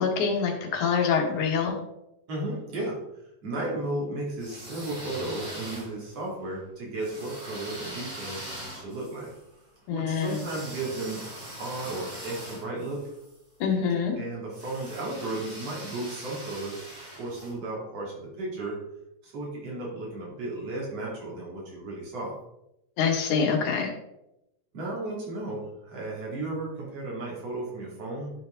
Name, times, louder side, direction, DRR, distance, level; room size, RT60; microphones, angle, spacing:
voice 1, 0.0-1.7 9.9-10.4 13.6-14.1 23.0-23.9, left 6 dB, 80° left, 1 dB, 2.8 m, -25 dB
voice 2, 2.3-3.0 3.4-8.5 8.7-9.3 9.9-11.2 11.6-13.1 14.2-16.8 17.2-18.8 19.2-22.3 24.7-28.3, right 2 dB, 55° right, -3 dB, 3.6 m, -34 dB
sound 1, 4.3-6.2 7.0-13.4 14.5-17.5, right 1 dB, 40° right, 3.4 m, -42 dB
12.0 x 4.8 x 3.8 m, 0.85 s
omnidirectional pair, 3.4 m